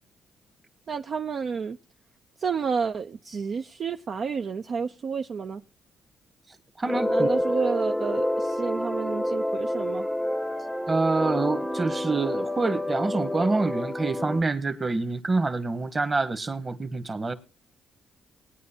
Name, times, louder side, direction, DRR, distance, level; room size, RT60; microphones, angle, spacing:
voice 1, 0.9-1.8 2.4-5.6 7.1-10.1, right 5 dB, 50° right, 0.5 m, -30 dB
voice 2, 6.8-7.3 10.9-17.3, right 3 dB, 30° right, 1.3 m, -26 dB
sound 1, 6.9-14.4, left 1 dB, ahead, 0.8 m, -28 dB
20.0 x 9.5 x 2.8 m
cardioid pair, 90°, 0 cm